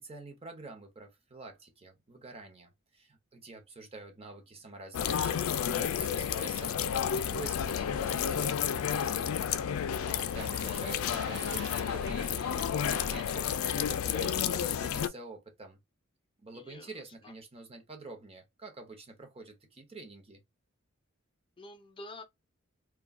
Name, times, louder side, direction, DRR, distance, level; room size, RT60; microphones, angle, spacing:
voice 1, 0.0-9.4 10.1-13.5 13.9-15.8 16.4-20.4, right 3 dB, 30° right, 0.7 m, -47 dB
sound 1, 4.9-15.1, left 8 dB, 85° left, 0.3 m, -31 dB
voice 2, 9.9-10.4 16.5-17.3 21.6-22.2, left 2 dB, 25° left, 0.5 m, -49 dB
sound 2, 9.9-14.0, right 7 dB, 55° right, 0.3 m, -49 dB
2.3 x 2.2 x 3.5 m
head